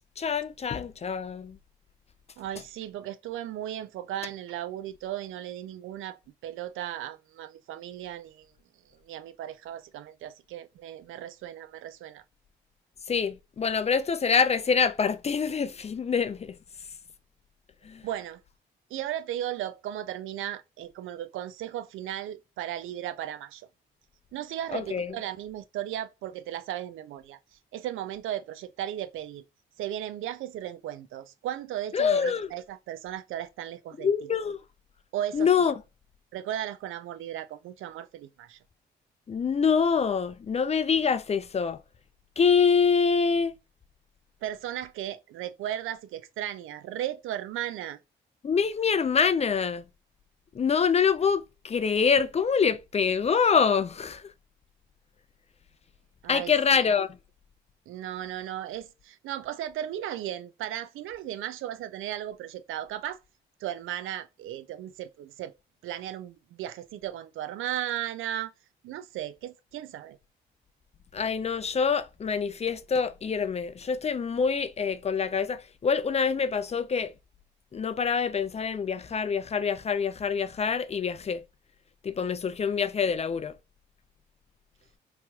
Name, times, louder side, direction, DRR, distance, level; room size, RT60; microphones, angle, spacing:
voice 1, 0.2-1.6 13.1-16.6 17.8-18.1 24.7-25.1 31.9-32.5 34.0-34.6 35.3-35.7 39.3-41.8 42.4-43.5 48.4-49.8 50.5-54.3 56.3-57.2 71.1-77.1 77.7-81.4 82.0-83.5, left 6 dB, 30° left, 0.4 m, -25 dB
voice 2, 2.4-8.5 8.9-12.2 18.0-18.4 18.9-23.7 24.3-27.4 27.7-29.4 29.8-34.1 35.1-35.7 36.3-38.6 44.4-48.0 56.2-56.5 57.9-63.2 63.6-65.5 65.8-68.5 68.8-70.2, right 12 dB, 70° right, 0.4 m, -36 dB
3.0 x 3.0 x 2.2 m
supercardioid pair, 55°, 21 cm